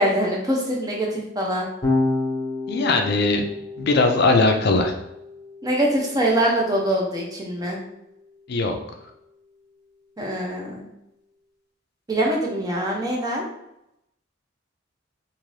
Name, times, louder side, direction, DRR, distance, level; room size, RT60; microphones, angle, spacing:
voice 1, 0.0-1.7 5.6-7.8 10.2-10.8 12.1-13.4, right 1 dB, 20° right, -2 dB, 0.7 m, -23 dB
Electric guitar / Bass guitar, 1.8-8.2, left 2 dB, 20° left, 0.7 m, -30 dB
voice 2, 2.7-3.5 3.8-5.0 8.5-8.8, left 3 dB, 55° left, 5 dB, 0.4 m, -19 dB
2.6 x 2.6 x 3.2 m, 0.81 s
head